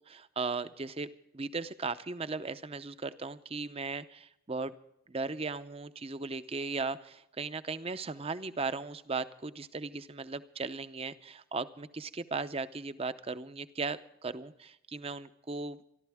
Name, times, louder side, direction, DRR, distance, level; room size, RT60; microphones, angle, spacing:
voice 1, 0.1-1.1 1.3-4.7 5.1-15.8, right 4 dB, 25° right, 13 dB, 0.6 m, -37 dB
27.0 x 12.0 x 3.5 m, 0.77 s
head